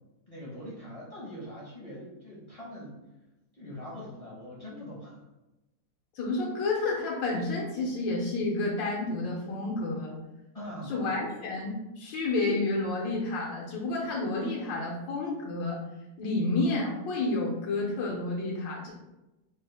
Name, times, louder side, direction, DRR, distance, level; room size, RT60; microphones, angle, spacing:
voice 1, 0.3-3.0 3.5-5.2 10.5-11.2 17.2-17.4, equal, 35° left, -7 dB, 0.6 m, -42 dB
voice 2, 6.1-10.2 10.9-15.8 16.2-18.9, left 2 dB, 80° left, -3 dB, 1.4 m, -30 dB
3.8 x 2.1 x 3.3 m, 0.99 s
omnidirectional pair, 1.9 m